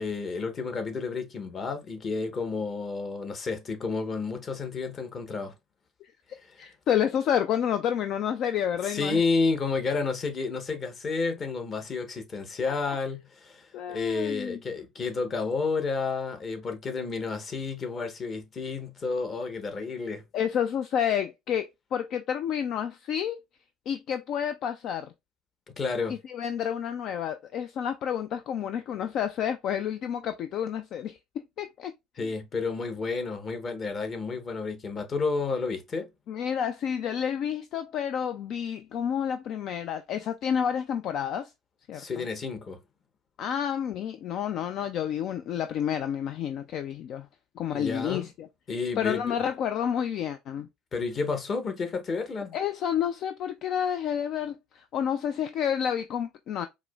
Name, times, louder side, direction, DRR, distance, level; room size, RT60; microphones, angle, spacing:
voice 1, 0.0-5.5 8.8-20.2 25.8-26.2 32.2-36.1 41.9-42.8 47.7-48.3 48.7-49.3 50.9-52.6, left 4 dB, 40° left, 1.0 m, -31 dB
voice 2, 6.6-9.2 12.9-13.0 13.7-14.6 20.3-23.4 23.9-25.1 26.2-31.2 31.6-31.9 32.2-32.3 36.3-41.5 41.9-42.2 43.4-47.3 47.6-48.5 49.0-50.7 52.5-56.7, left 9 dB, 55° left, 0.3 m, -29 dB
4.7 x 2.0 x 2.3 m
hypercardioid pair, 70°, 0 cm